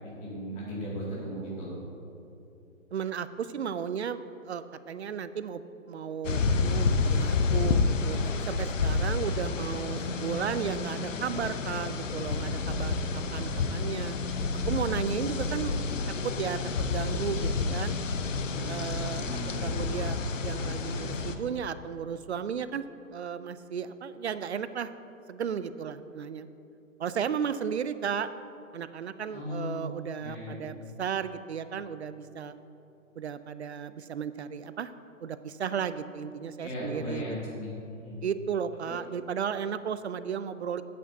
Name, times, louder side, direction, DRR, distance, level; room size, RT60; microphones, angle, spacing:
voice 1, 0.0-1.7 18.5-18.7 19.1-19.8 29.3-29.8 30.2-30.6 36.6-38.2 38.9-39.0, left 1 dB, 15° left, -6 dB, 2.3 m, -37 dB
voice 2, 2.9-5.6 5.9-14.2 14.6-15.8 16.2-16.6 16.9-18.0 18.7-19.3 19.6-22.8 23.1-24.9 25.3-26.5 27.0-28.3 28.7-32.5 33.2-34.9 35.2-37.4 38.2-40.8, right 7 dB, 55° right, 13 dB, 0.5 m, -34 dB
sound 1, 6.2-21.4, left 4 dB, 65° left, 0.9 m, -29 dB
16.0 x 8.5 x 2.7 m, 2.8 s
figure-of-eight pair, 150°, 41 cm